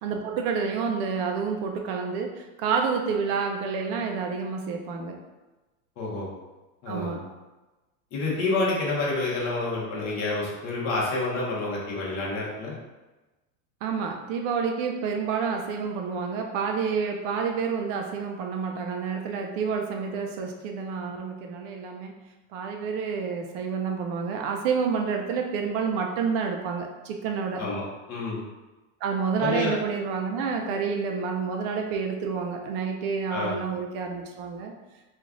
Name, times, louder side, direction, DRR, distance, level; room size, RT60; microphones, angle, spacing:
voice 1, 0.0-5.2 6.9-7.3 13.8-22.3 22.5-27.6 29.0-34.7, right 5 dB, 45° right, 3 dB, 0.4 m, -29 dB
voice 2, 6.0-6.3 6.8-7.2 8.1-12.8 27.6-28.4 29.4-29.8 33.3-33.6, left 2 dB, 40° left, -5 dB, 1.1 m, -28 dB
3.1 x 2.4 x 3.6 m, 1.1 s
supercardioid pair, 140°, 41 cm